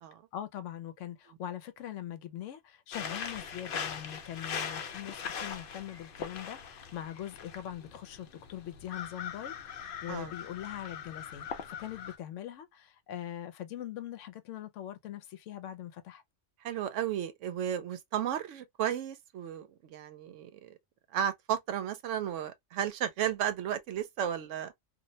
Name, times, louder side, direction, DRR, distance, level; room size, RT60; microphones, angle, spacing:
voice 1, 0.3-16.2, left 11 dB, 85° left, 0.9 m, -42 dB
sound 1, 2.9-12.2, left 7 dB, 60° left, 0.6 m, -41 dB
voice 2, 16.6-20.8 21.1-24.7, right 10 dB, 85° right, 0.9 m, -34 dB
2.5 x 2.1 x 2.6 m
omnidirectional pair, 1.2 m